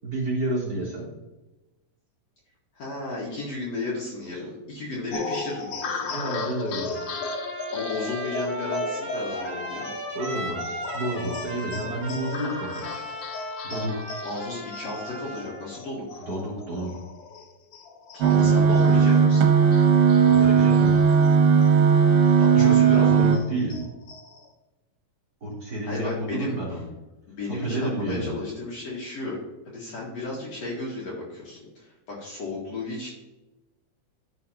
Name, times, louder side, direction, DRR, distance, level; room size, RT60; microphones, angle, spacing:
voice 1, 0.0-1.1 4.3-4.4 6.1-7.0 9.7-9.8 10.1-14.1 16.2-16.9 18.3-19.0 20.2-21.1 22.2-23.8 25.4-26.9 27.5-28.4, right 1 dB, 25° right, -7 dB, 3.5 m, -31 dB
voice 2, 2.8-6.1 7.7-9.9 14.2-16.3 18.1-19.5 22.4-23.3 25.8-26.6 27.3-29.4 29.7-33.1, left 2 dB, 55° left, -5 dB, 2.6 m, -34 dB
sound 1, 5.1-22.0 22.4-22.5 22.8-24.5, left 3 dB, 80° left, 1.3 m, -36 dB
Trumpet, 6.9-15.7, equal, 10° right, 2.2 m, -37 dB
sound 2, 18.2-23.4, right 6 dB, 80° right, 2.6 m, -17 dB
13.5 x 6.4 x 2.8 m, 1.1 s
omnidirectional pair, 3.9 m